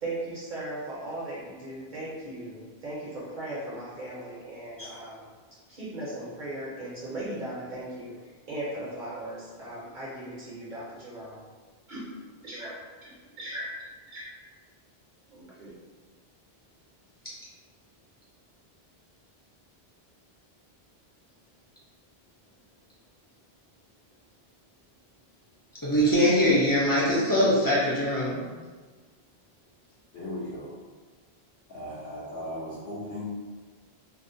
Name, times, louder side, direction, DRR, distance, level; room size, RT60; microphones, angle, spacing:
voice 1, 0.0-5.2 5.7-11.4 11.9-12.1 12.4-13.7 14.1-14.3 15.3-15.7, right 1 dB, 55° right, -8 dB, 0.7 m, -38 dB
voice 2, 25.8-28.4, equal, 30° left, -9 dB, 0.4 m, -22 dB
voice 3, 30.1-30.7 31.7-33.2, equal, 65° left, -10 dB, 0.8 m, -37 dB
2.4 x 2.1 x 2.6 m, 1.4 s
omnidirectional pair, 1.0 m